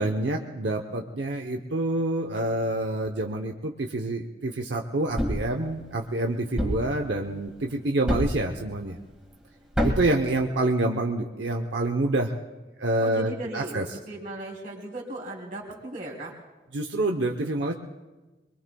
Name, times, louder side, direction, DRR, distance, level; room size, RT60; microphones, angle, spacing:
voice 1, 0.0-9.0 9.8-12.3 12.8-13.8 16.7-17.7, right 2 dB, 80° right, 3 dB, 0.8 m, -27 dB
Thump thud, 5.2-5.5 6.6-6.9 8.1-8.5 9.7-10.2, equal, 5° right, 2.0 m, -26 dB
voice 2, 13.0-13.8 14.1-16.3, right 2 dB, 45° right, -1 dB, 3.0 m, -36 dB
24.0 x 23.0 x 2.3 m, 1.2 s
head